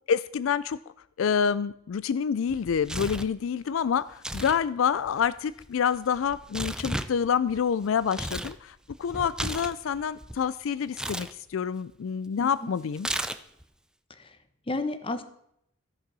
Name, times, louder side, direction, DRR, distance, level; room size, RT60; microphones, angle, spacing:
voice 1, 0.1-0.8 1.2-13.1, left 7 dB, 75° left, 16 dB, 0.4 m, -27 dB
Tearing, 2.5-3.4 4.1-4.6 4.9-8.6 8.9-10.4 10.9-11.3 13.0-13.6, right 1 dB, 5° right, 0.5 m, -34 dB
voice 2, 12.4-12.7 14.2-14.4 14.7-15.2, left 2 dB, 25° left, 11 dB, 0.9 m, -32 dB
14.0 x 6.7 x 6.1 m, 0.73 s
head